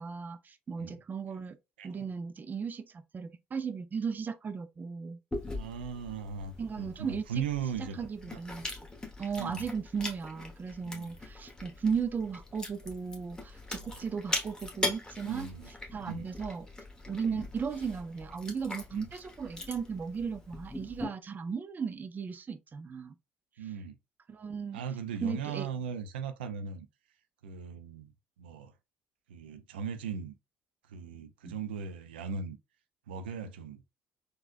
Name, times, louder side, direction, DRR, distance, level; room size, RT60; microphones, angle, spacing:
voice 1, 0.0-1.6 1.8-5.2 6.6-7.4 7.8-8.7 9.2-15.5 15.9-16.7 17.1-23.2 24.3-24.8 25.2-25.7 31.4-31.6, right 6 dB, 35° right, 0.5 m, -36 dB
voice 2, 1.8-2.1 5.5-8.4 9.4-9.7 10.9-11.1 15.2-15.7 16.0-16.3 17.3-17.5 18.9-19.1 23.6-24.0 24.7-26.9 27.4-28.1 28.4-28.7 29.3-30.3 30.9-32.6 33.1-33.8, right 6 dB, 90° right, 0.3 m, -38 dB
Chewing mastication, 5.3-21.0, left 2 dB, 15° left, 1.2 m, -41 dB
3.8 x 2.3 x 2.5 m
hypercardioid pair, 60°, 5 cm